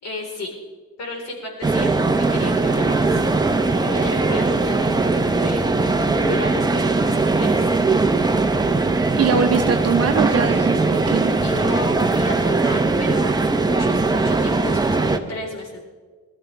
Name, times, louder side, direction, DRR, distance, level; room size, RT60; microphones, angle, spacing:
voice 1, 0.0-0.5 1.0-3.2 3.6-5.1 5.3-5.9 6.2-7.7 11.4-15.8, left 2 dB, 60° left, 0 dB, 4.6 m, -34 dB
sound 1, 1.6-15.2, right 3 dB, 15° right, 1.0 m, -20 dB
voice 2, 9.2-11.4, right 6 dB, 55° right, 5 dB, 1.0 m, -22 dB
20.0 x 13.0 x 3.5 m, 1.4 s
cardioid pair, 90°, 30 cm